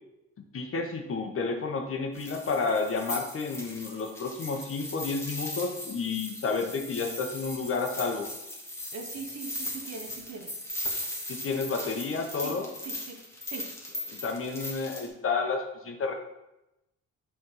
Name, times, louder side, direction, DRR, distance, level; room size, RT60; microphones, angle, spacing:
voice 1, 0.5-8.3 11.3-12.7 14.1-16.1, left 4 dB, 45° left, 4 dB, 1.1 m, -31 dB
sound 1, 2.1-15.1, left 1 dB, 10° left, 1.5 m, -38 dB
voice 2, 8.9-10.5 12.4-13.7, right 5 dB, 60° right, 4 dB, 1.1 m, -42 dB
5.4 x 3.6 x 5.4 m, 0.92 s
cardioid pair, 90°, 30 cm